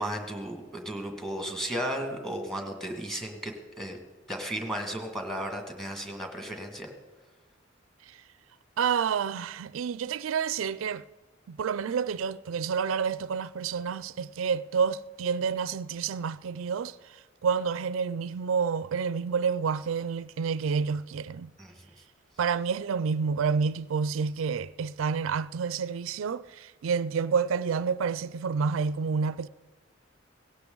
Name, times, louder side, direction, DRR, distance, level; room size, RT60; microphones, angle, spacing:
voice 1, 0.0-4.0 4.3-6.9 21.6-21.7, right 1 dB, ahead, 1.8 m, -34 dB
voice 2, 8.8-11.0 11.5-21.5 22.4-29.5, right 6 dB, 90° right, 0.4 m, -29 dB
18.0 x 16.5 x 3.9 m
head